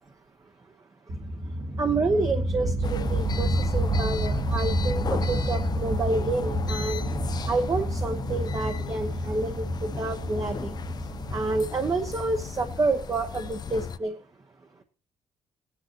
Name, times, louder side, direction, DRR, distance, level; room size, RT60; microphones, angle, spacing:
sound 1, 1.1-13.5, right 1 dB, 50° right, 1.6 m, -29 dB
voice 1, 1.8-7.0 7.5-10.7 11.3-14.2, right 3 dB, 30° right, 5 dB, 1.0 m, -28 dB
sound 2, 2.8-14.0, left 7 dB, 35° left, 0.5 m, -36 dB
17.5 x 10.0 x 3.0 m, 0.38 s
cardioid pair, 105°, 11 cm